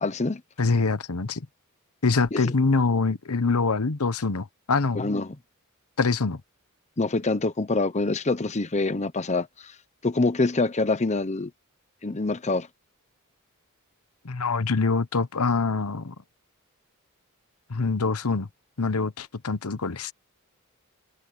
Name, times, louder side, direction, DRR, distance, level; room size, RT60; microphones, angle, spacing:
voice 1, 0.0-0.4 2.3-2.5 4.9-5.3 7.0-9.7 10.0-11.5 12.0-12.7, left 3 dB, 30° left, 0.9 m, -25 dB
voice 2, 0.6-1.5 2.0-5.1 6.0-6.4 14.2-16.1 17.7-18.5 18.8-20.1, left 4 dB, 90° left, 1.0 m, -24 dB
head